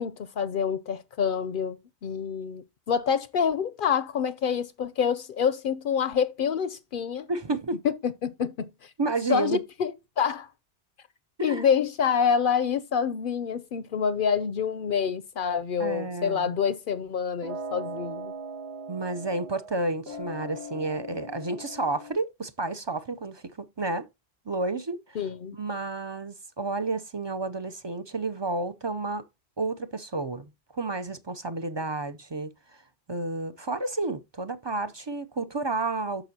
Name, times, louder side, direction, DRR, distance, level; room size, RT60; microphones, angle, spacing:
voice 1, 0.0-7.3 8.0-8.5 9.3-10.5 11.4-18.3 25.2-25.6, left 7 dB, 60° left, 0.7 m, -27 dB
voice 2, 7.3-7.8 9.0-9.6 11.4-11.7 15.8-16.6 18.9-23.5 23.8-24.1 24.5-25.2 25.5-29.2 29.6-36.3, right 3 dB, 35° right, 0.4 m, -31 dB
sound 1, 17.4-19.8 20.1-22.1, right 1 dB, 70° right, 1.7 m, -39 dB
9.0 x 6.7 x 2.7 m
omnidirectional pair, 1.1 m